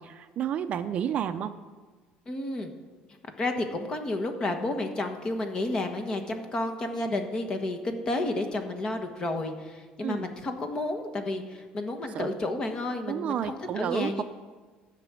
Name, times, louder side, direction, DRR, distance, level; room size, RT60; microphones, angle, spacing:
voice 1, 0.0-1.6 10.0-10.3 12.1-12.3 13.1-14.2, right 9 dB, 45° right, 10 dB, 0.6 m, -31 dB
voice 2, 2.3-2.7 3.4-14.2, left 2 dB, 30° left, 6 dB, 1.4 m, -31 dB
13.0 x 6.1 x 9.0 m, 1.4 s
cardioid pair, 150°, 3 cm